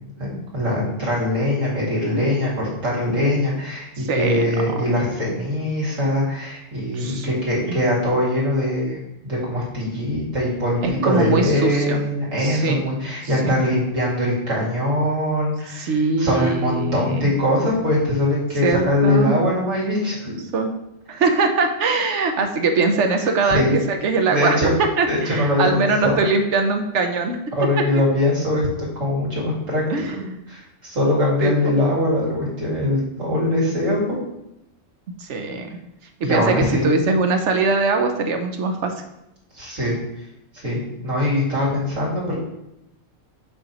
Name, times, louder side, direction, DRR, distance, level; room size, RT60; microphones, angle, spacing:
voice 1, 0.2-9.0 9.2-20.4 23.2-23.8 24.3-24.7 25.1-26.2 27.5-28.7 29.0-29.8 30.1-30.2 30.5-34.2 36.2-37.1 39.5-39.9 40.6-42.4, left 1 dB, 85° right, -6 dB, 2.7 m, -22 dB
voice 2, 4.0-4.6 6.9-7.3 7.7-7.8 10.8-12.0 12.4-12.8 13.4-13.6 15.8-17.3 18.6-19.4 20.5-20.7 21.1-27.4 27.8-28.0 29.9-30.2 31.4-31.7 35.2-35.7 36.2-38.9, right 3 dB, 70° right, 5 dB, 1.1 m, -22 dB
7.7 x 3.0 x 5.3 m, 0.85 s
omnidirectional pair, 1.3 m